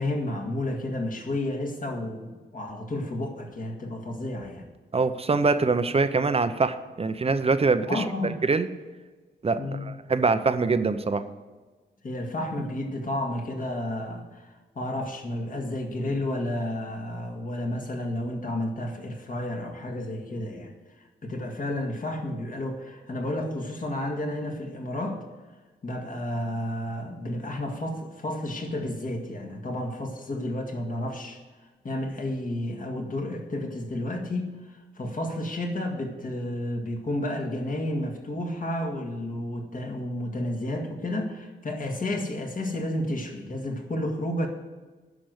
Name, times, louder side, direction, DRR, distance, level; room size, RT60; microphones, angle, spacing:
voice 1, 0.0-4.7 7.9-8.4 9.6-9.9 12.0-14.5 14.8-20.7 21.2-25.2 25.8-31.4 31.8-44.5, left 1 dB, 45° left, 2 dB, 2.0 m, -31 dB
voice 2, 4.9-8.0 8.4-8.7 9.4-9.6 9.9-11.2, right 4 dB, 30° right, 10 dB, 0.7 m, -23 dB
10.5 x 6.1 x 8.0 m, 1.3 s
wide cardioid pair, 110°, 19 cm